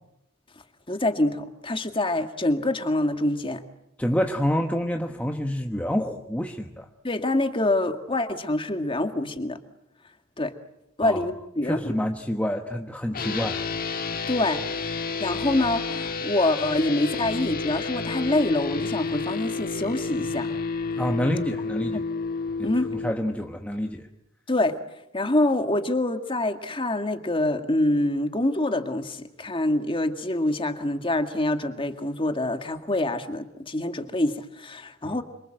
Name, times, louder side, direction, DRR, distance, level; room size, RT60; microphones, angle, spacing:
voice 1, 0.9-3.6 7.0-9.6 10.4-10.5 11.0-12.0 14.3-14.6 15.2-20.6 21.9-22.1 22.6-23.0 24.5-24.8 25.1-35.2, left 1 dB, 25° left, 7 dB, 1.9 m, -25 dB
voice 2, 4.0-6.9 11.0-11.2 11.6-13.6 21.0-22.0 22.6-24.1 35.0-35.2, equal, 5° left, 3 dB, 1.3 m, -28 dB
sound 1, 13.1-23.1, left 4 dB, 45° left, 1.6 m, -30 dB
27.5 x 25.5 x 7.8 m, 0.81 s
head